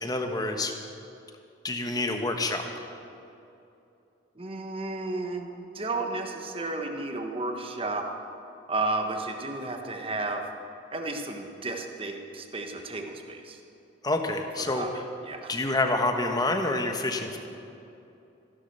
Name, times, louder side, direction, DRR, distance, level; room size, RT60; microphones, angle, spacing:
voice 1, 0.0-0.7 1.6-2.7 14.0-14.9 15.5-17.4, left 2 dB, 20° left, 5 dB, 1.1 m, -27 dB
voice 2, 4.4-8.0 8.7-10.4 10.9-13.6 14.6-15.5, right 2 dB, 30° right, 4 dB, 1.2 m, -33 dB
15.0 x 11.0 x 6.6 m, 2.7 s
head